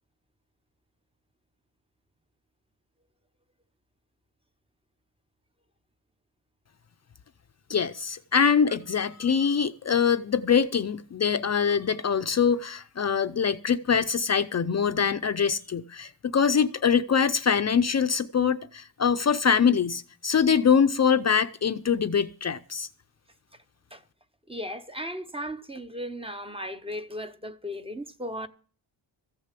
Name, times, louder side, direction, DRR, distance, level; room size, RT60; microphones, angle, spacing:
voice 1, 7.7-22.9, left 6 dB, 35° left, 0.5 m, -24 dB
voice 2, 24.5-28.5, equal, 10° right, 0.7 m, -36 dB
14.5 x 6.6 x 8.2 m
wide cardioid pair, 150°, 45 cm